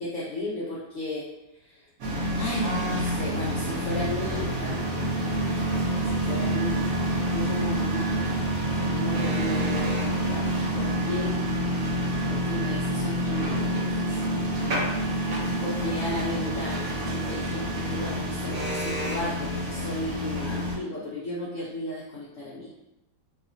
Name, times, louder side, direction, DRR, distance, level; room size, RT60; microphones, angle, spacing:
voice 1, 0.0-1.2 2.3-4.8 6.2-8.2 8.9-11.4 12.3-14.1 15.6-22.7, left 1 dB, 90° left, -6 dB, 0.6 m, -35 dB
sound 1, 2.0-20.8, right 1 dB, 60° right, 1.0 m, -27 dB
2.8 x 2.4 x 2.5 m, 0.89 s
omnidirectional pair, 2.0 m